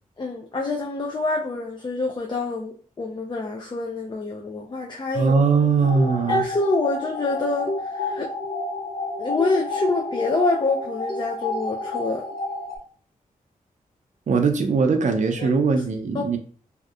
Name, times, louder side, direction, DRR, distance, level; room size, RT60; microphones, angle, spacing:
voice 1, 0.2-5.4 6.3-8.3 9.2-12.3 15.4-15.5 16.1-16.4, left 3 dB, 30° left, 0.4 m, -26 dB
voice 2, 5.1-6.4 14.3-16.4, right 4 dB, 55° right, 0.5 m, -20 dB
sound 1, 5.8-12.8, left 2 dB, 80° left, 1.0 m, -30 dB
2.7 x 2.1 x 2.3 m
cardioid pair, 60°, 15 cm